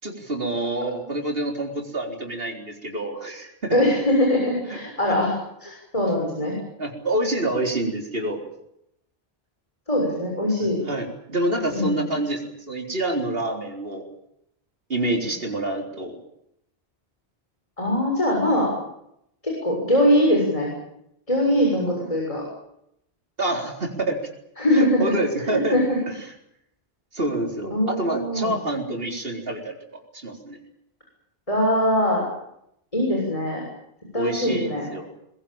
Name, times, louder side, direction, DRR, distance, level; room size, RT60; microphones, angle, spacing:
voice 1, 0.0-3.8 4.7-4.8 5.1-5.2 6.8-8.4 10.9-14.0 14.9-16.2 23.4-24.2 24.7-25.8 26.1-26.2 27.1-29.8 30.1-30.6 34.2-35.1, right 1 dB, 65° right, 2 dB, 4.3 m, -27 dB
voice 2, 3.7-5.3 5.6-6.6 9.9-10.8 11.7-12.0 17.8-18.7 19.4-20.7 21.3-22.4 24.6-25.1 25.4-26.0 27.7-28.5 31.5-32.2 32.9-33.6 34.1-34.9, left 1 dB, 35° left, -1 dB, 6.7 m, -22 dB
22.5 x 21.0 x 9.0 m, 0.77 s
omnidirectional pair, 1.1 m